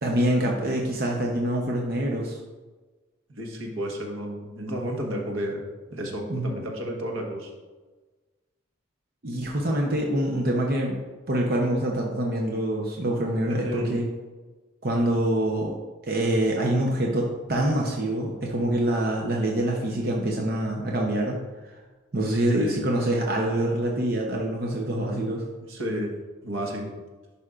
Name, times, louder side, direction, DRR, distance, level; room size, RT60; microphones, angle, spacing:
voice 1, 0.0-2.4 6.3-6.6 9.2-11.0 11.3-14.0 14.8-15.8 16.0-21.4 22.1-25.4, right 1 dB, 45° right, -1 dB, 0.7 m, -25 dB
voice 2, 3.3-7.5 13.4-13.9 22.5-22.8 25.7-26.1 26.4-26.9, equal, 80° right, 1 dB, 1.3 m, -32 dB
11.0 x 5.2 x 2.5 m, 1.3 s
head